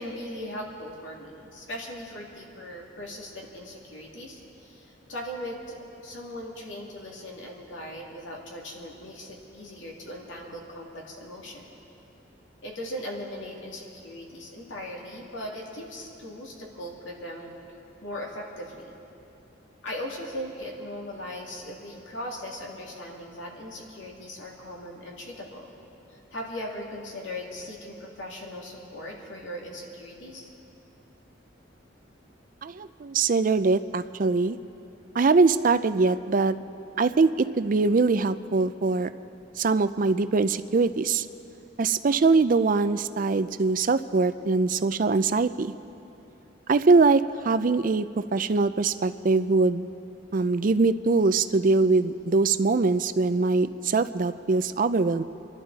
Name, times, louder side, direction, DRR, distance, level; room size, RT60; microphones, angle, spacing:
voice 1, 0.0-11.7 12.6-17.5 18.0-19.0 19.8-25.7 26.1-30.5, left 1 dB, 85° left, -2 dB, 2.5 m, -39 dB
voice 2, 32.6-34.6 35.1-36.6 37.0-39.1 39.6-41.3 41.8-45.7 46.7-49.9 50.3-55.2, right 3 dB, 45° right, 12 dB, 0.4 m, -22 dB
27.0 x 12.0 x 4.1 m, 2.8 s
head